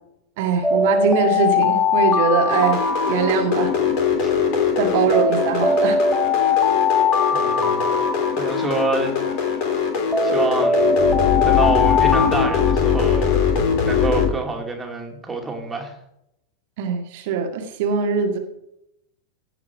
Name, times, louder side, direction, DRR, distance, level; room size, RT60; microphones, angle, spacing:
voice 1, 0.4-3.7 4.8-6.0 16.8-18.4, right 6 dB, 50° right, 4 dB, 1.7 m, -22 dB
Alarm, 0.6-3.9 5.1-8.9 10.1-13.4, left 4 dB, 5° left, 1.3 m, -21 dB
sound 1, 2.5-14.3, left 7 dB, 45° left, 3.1 m, -21 dB
voice 2, 7.3-7.9 8.4-9.1 10.2-10.9 11.4-13.3 13.8-16.0, right 3 dB, 10° right, 1 dB, 2.6 m, -27 dB
16.0 x 6.0 x 4.6 m, 0.80 s
figure-of-eight pair, 90°, 0 cm